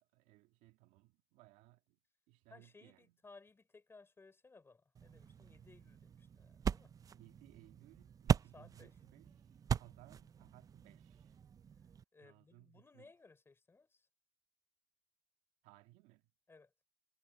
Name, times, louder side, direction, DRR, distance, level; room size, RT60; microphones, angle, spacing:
voice 1, 0.0-2.0 2.3-3.2 7.1-11.4 12.2-13.1 15.6-16.3, right 18 dB, 85° right, 2.3 m, -64 dB
voice 2, 2.5-6.9 8.5-9.0 12.1-14.1 16.5-16.7, left 3 dB, 20° left, 4.1 m, -61 dB
sound 1, 5.0-12.0, right 7 dB, 30° right, 0.5 m, -40 dB
cardioid pair, 120°, 13 cm